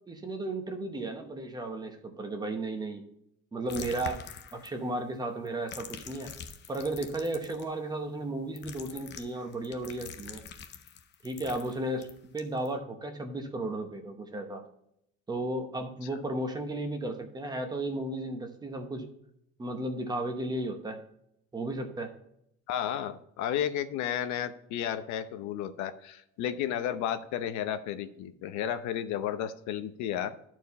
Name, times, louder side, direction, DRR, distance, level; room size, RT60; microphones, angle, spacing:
voice 1, 0.1-3.0 3.5-6.3 6.7-10.4 11.2-12.1 12.3-14.6 15.3-19.1 19.6-21.0 21.5-22.1, right 2 dB, 15° right, 5 dB, 0.8 m, -34 dB
sound 1, 3.7-5.0 5.5-7.7 8.6-12.7, left 7 dB, 40° left, 0.7 m, -45 dB
voice 2, 22.7-30.4, left 10 dB, 75° left, 10 dB, 0.8 m, -33 dB
12.5 x 4.6 x 4.1 m, 0.75 s
cardioid pair, 175°, 29 cm